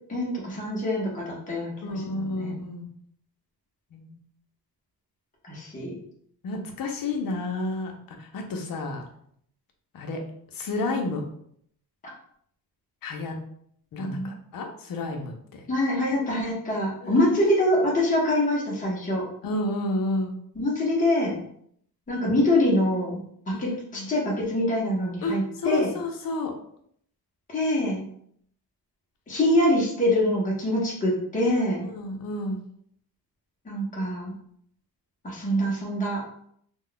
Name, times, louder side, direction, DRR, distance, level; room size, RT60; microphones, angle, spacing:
voice 1, 0.1-2.5 5.5-5.9 14.0-14.3 15.7-19.2 20.6-21.4 22.1-25.9 27.5-28.0 29.3-31.9 33.7-34.3 35.2-36.2, left 1 dB, 20° left, -5 dB, 0.7 m, -25 dB
voice 2, 1.8-2.9 3.9-4.1 6.4-7.9 8.2-9.1 9.9-10.2 10.5-11.2 13.0-13.3 13.9-15.6 17.0-17.2 19.4-20.4 23.5-24.1 25.2-26.5 31.8-32.6, left 2 dB, 60° left, 3 dB, 0.6 m, -31 dB
2.3 x 2.2 x 3.8 m, 0.66 s
wide cardioid pair, 165°, 39 cm